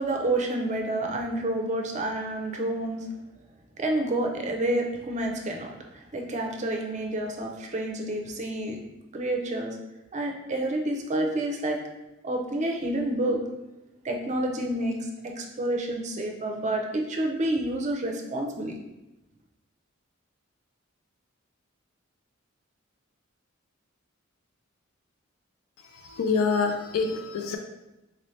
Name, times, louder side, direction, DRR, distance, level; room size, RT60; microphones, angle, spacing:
voice 1, 0.0-3.1 3.8-8.8 9.1-9.8 10.1-11.8 12.2-13.4 14.0-18.8, right 1 dB, 35° right, 2 dB, 0.5 m, -29 dB
voice 2, 25.8-27.6, left 4 dB, 85° left, 5 dB, 0.4 m, -27 dB
4.1 x 2.7 x 3.1 m, 0.98 s
head